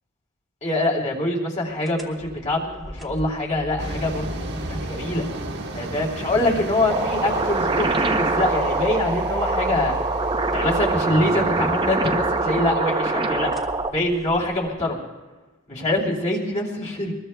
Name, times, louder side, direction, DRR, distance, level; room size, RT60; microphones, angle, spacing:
voice 1, 0.6-5.3 5.7-10.0 10.5-13.5 13.9-15.0 15.7-17.1, left 1 dB, 35° left, -3 dB, 3.0 m, -24 dB
sound 1, 1.8-14.7, equal, ahead, 1.2 m, -37 dB
sound 2, 3.8-12.5, right 2 dB, 55° right, 1.4 m, -35 dB
sound 3, 6.9-13.9, right 3 dB, 25° right, 0.7 m, -24 dB
24.0 x 20.5 x 2.3 m, 1.2 s
head